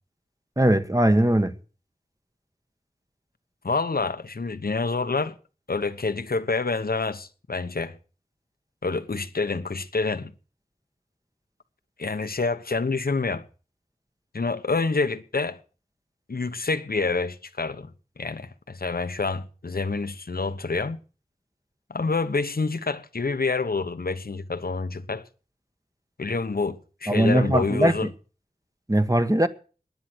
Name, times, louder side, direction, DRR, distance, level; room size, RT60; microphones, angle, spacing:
voice 1, 0.6-1.5 27.1-27.9 28.9-29.5, right 1 dB, 20° right, 1.3 m, -20 dB
voice 2, 3.6-5.4 5.7-8.0 8.8-10.3 12.0-13.4 14.3-15.6 16.3-17.9 18.2-21.0 21.9-25.2 26.2-28.1, left 3 dB, 80° left, 1.0 m, -27 dB
15.5 x 10.0 x 6.2 m
wide cardioid pair, 45°, 15 cm